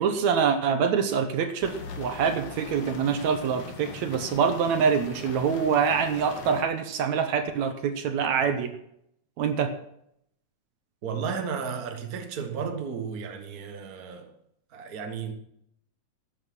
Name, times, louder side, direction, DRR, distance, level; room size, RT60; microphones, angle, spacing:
voice 1, 0.0-8.8 9.4-9.7, right 6 dB, 70° right, 2.2 m, -25 dB
sound 1, 1.6-6.6, left 5 dB, 90° left, 3.4 m, -41 dB
voice 2, 11.0-14.3 14.7-15.3, right 6 dB, 40° right, 1.4 m, -33 dB
13.5 x 9.3 x 6.1 m
omnidirectional pair, 3.6 m